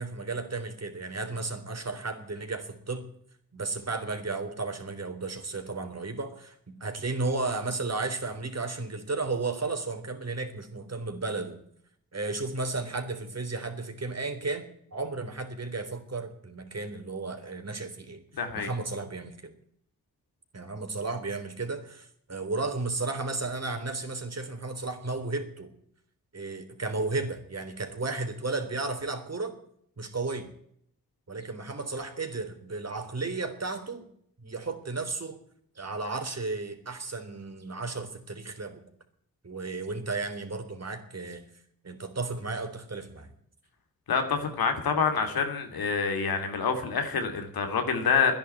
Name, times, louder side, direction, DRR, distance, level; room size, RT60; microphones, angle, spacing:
voice 1, 0.0-3.1 3.5-11.6 12.1-18.2 18.5-19.5 20.5-25.7 26.3-29.5 30.0-30.5 31.3-34.1 34.4-35.4 35.8-38.8 39.4-41.4 41.8-43.3, right 3 dB, 45° right, 6 dB, 3.7 m, -34 dB
voice 2, 18.4-18.7 44.1-48.3, left 5 dB, 80° left, 6 dB, 2.8 m, -27 dB
12.0 x 10.5 x 9.6 m, 0.67 s
supercardioid pair, 45°, 36 cm